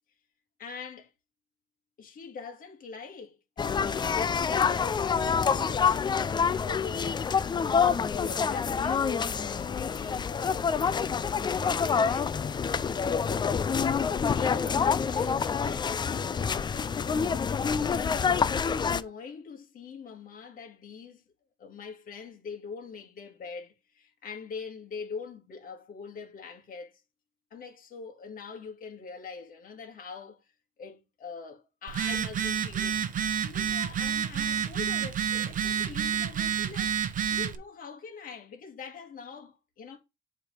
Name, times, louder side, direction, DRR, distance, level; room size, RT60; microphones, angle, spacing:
voice 1, 0.6-1.1 2.0-7.3 7.7-13.5 14.2-15.9 16.5-17.9 18.6-21.2 21.6-27.0 27.5-30.5 30.8-33.1 33.4-37.0 37.3-40.0, left 5 dB, 50° left, 2.0 m, -43 dB
sound 1, 3.6-19.0, left 6 dB, 25° left, 0.4 m, -27 dB
Telephone, 31.9-37.5, right 8 dB, 45° right, 0.8 m, -29 dB
7.6 x 3.4 x 5.6 m
cardioid pair, 115°, 19 cm